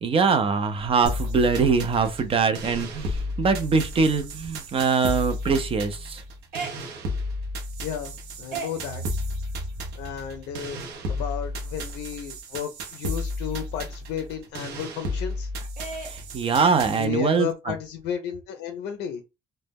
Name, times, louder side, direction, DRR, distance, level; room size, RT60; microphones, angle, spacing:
voice 1, 0.0-6.2 16.0-17.7, right 5 dB, 35° right, 0.4 m, -23 dB
sound 1, 0.6-12.1 12.5-12.6 12.8-15.3 15.8-17.2, right 3 dB, 60° right, 1.0 m, -41 dB
sound 2, 1.1-17.1, left 1 dB, 85° right, 0.6 m, -33 dB
voice 2, 7.8-9.0 10.0-10.8 11.1-15.5 17.0-19.2, left 9 dB, 80° left, 0.4 m, -33 dB
2.1 x 2.0 x 3.4 m
cardioid pair, 110°, 17 cm